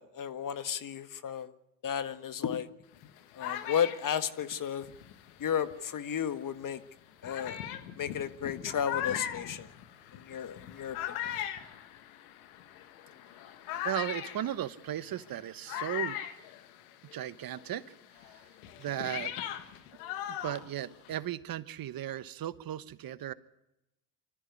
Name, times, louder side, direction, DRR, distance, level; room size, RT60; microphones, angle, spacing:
voice 1, 0.0-1.5 1.8-2.7 3.4-4.9 5.4-6.8 7.2-7.6 8.0-9.7 10.1-11.2, left 8 dB, 45° left, 12 dB, 1.7 m, -33 dB
sound 1, 2.9-6.0 6.6-6.7 7.2-17.3 17.5-21.3, left 11 dB, 85° left, 1.6 m, -40 dB
voice 2, 13.8-16.2 17.1-17.8 18.2-18.4 18.8-19.3 20.3-23.3, right 11 dB, 55° right, 16 dB, 1.2 m, -36 dB
24.5 x 14.0 x 9.8 m, 0.89 s
hypercardioid pair, 60°, 43 cm